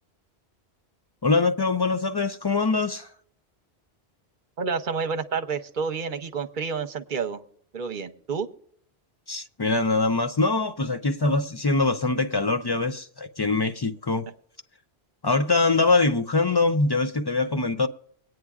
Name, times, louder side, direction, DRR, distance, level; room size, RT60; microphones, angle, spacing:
voice 1, 1.2-3.1 9.3-14.3 15.2-17.9, left 3 dB, 40° left, 0.3 m, -23 dB
voice 2, 4.6-7.4 7.7-8.5, right 5 dB, 50° right, 0.9 m, -29 dB
22.0 x 9.2 x 2.4 m
omnidirectional pair, 1.1 m